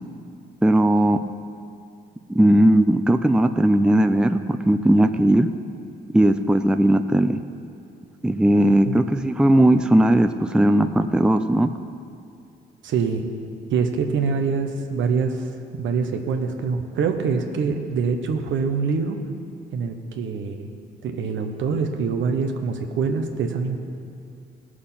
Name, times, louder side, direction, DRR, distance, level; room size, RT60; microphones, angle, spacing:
voice 1, 0.6-1.2 2.3-5.5 6.1-7.4 8.2-11.7, right 1 dB, 5° right, 9 dB, 0.4 m, -18 dB
voice 2, 12.8-13.3 13.7-19.2 19.7-20.7 21.0-23.8, right 5 dB, 75° right, 5 dB, 1.1 m, -25 dB
17.0 x 6.5 x 5.8 m, 2.4 s
cardioid pair, 90°, 20 cm